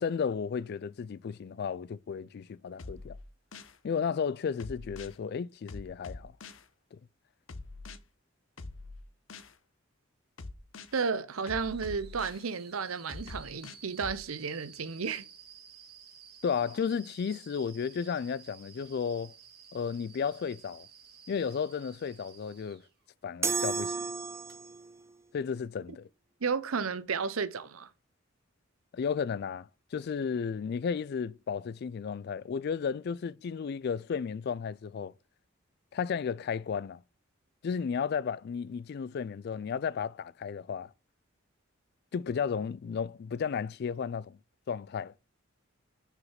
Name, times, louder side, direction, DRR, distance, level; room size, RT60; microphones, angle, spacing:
voice 1, 0.0-3.2 3.8-6.3 6.9-7.0 16.4-19.3 19.7-20.9 21.3-22.8 23.2-23.9 25.3-26.1 28.9-35.1 35.9-37.0 37.6-40.9 42.1-44.4 44.7-45.1, left 6 dB, 50° left, 0.3 m, -33 dB
sound 1, 2.8-3.8 4.6-5.2 5.7-6.7 7.5-8.0 8.6-9.5 10.4-10.9 11.5-12.4 13.1-14.2, left 3 dB, 65° left, 0.8 m, -44 dB
voice 2, 10.9-15.2 26.4-27.9, right 5 dB, 90° right, 0.7 m, -33 dB
sound 2, 11.3-22.9 24.3-24.5, right 7 dB, 50° right, 1.7 m, -54 dB
sound 3, 23.4-24.9, right 4 dB, 15° right, 0.4 m, -32 dB
6.3 x 5.0 x 5.7 m
head